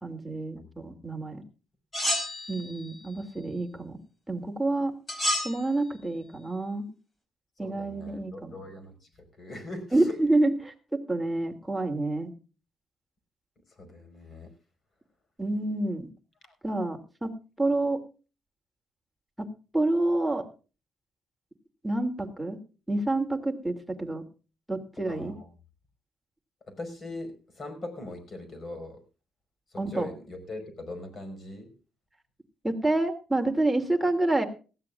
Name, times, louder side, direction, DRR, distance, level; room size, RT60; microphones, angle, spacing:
voice 1, 0.0-1.4 2.5-4.0 4.3-4.9 5.4-6.9 7.6-8.6 9.9-12.3 15.4-16.1 16.6-17.3 17.6-18.0 19.4-19.5 19.7-20.5 21.8-22.6 22.9-24.2 24.7-25.3 29.8-30.1 32.6-34.5, right 2 dB, 5° right, 3 dB, 2.6 m, -28 dB
sound 1, 1.9-2.9 5.1-5.6, equal, 25° left, 4.4 m, -29 dB
voice 2, 7.6-8.9 9.4-10.2 13.8-14.5 16.4-16.5 25.1-25.5 26.7-29.0 29.7-31.7, left 2 dB, 40° left, 9 dB, 5.5 m, -40 dB
19.0 x 15.0 x 2.4 m, 0.34 s
cardioid pair, 90°, 0 cm